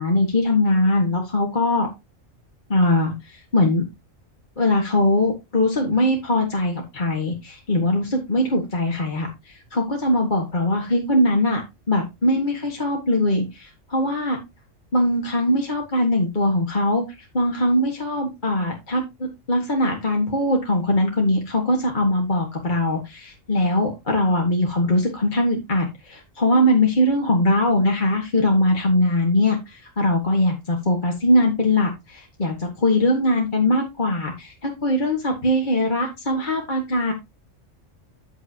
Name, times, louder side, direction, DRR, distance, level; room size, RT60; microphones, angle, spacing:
voice 1, 0.0-1.9 2.7-3.8 4.6-11.6 11.9-14.4 14.9-17.0 17.3-37.1, left 1 dB, 35° left, 0 dB, 2.0 m, -21 dB
9.7 x 8.3 x 2.9 m, 0.23 s
omnidirectional pair, 1.4 m